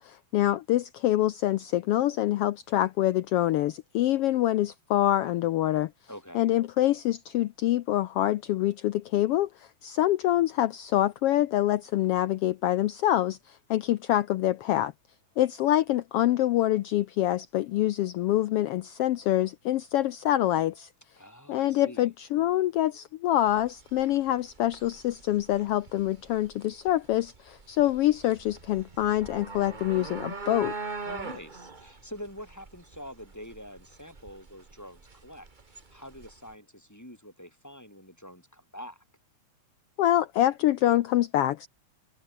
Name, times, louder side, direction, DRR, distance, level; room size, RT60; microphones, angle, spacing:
voice 1, 0.0-5.9 6.3-14.9 15.4-20.9 21.5-30.7 40.0-41.7, left 13 dB, 85° left, 1.3 m, -25 dB
voice 2, 6.1-6.5 21.2-22.1 31.1-39.0, equal, 5° left, 3.8 m, -45 dB
sound 1, 23.4-36.5, right 4 dB, 25° right, 1.0 m, -42 dB
omnidirectional pair, 3.4 m